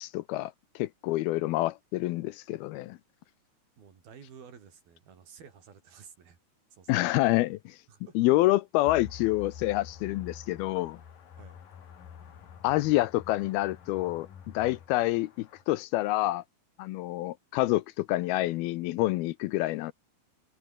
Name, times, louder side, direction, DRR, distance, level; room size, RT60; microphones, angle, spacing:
voice 1, 0.0-3.0 6.9-7.8 8.2-11.0 12.6-14.3 14.5-16.4 16.8-19.9, left 17 dB, 80° left, 2.4 m, -27 dB
voice 2, 3.8-6.4 6.7-7.2 7.9-8.1 11.3-11.6, right 7 dB, 65° right, 5.5 m, -52 dB
sound 1, 8.9-15.6, left 8 dB, 60° left, 4.3 m, -47 dB
omnidirectional pair, 4.6 m